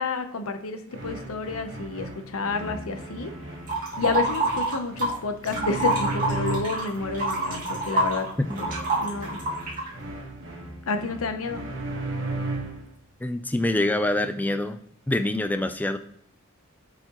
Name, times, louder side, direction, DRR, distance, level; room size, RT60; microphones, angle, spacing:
voice 1, 0.0-3.3 4.0-8.3 8.6-8.7 8.9-9.4 10.9-11.7, left 4 dB, 80° left, 8 dB, 0.7 m, -30 dB
sound 1, 0.9-12.9, right 2 dB, 65° right, 1.3 m, -36 dB
sound 2, 3.7-5.2 5.5-9.9, right 2 dB, 40° right, 2.3 m, -26 dB
voice 2, 13.2-14.8 15.1-16.0, left 1 dB, 10° left, 9 dB, 0.4 m, -25 dB
7.6 x 4.9 x 2.9 m, 0.68 s
head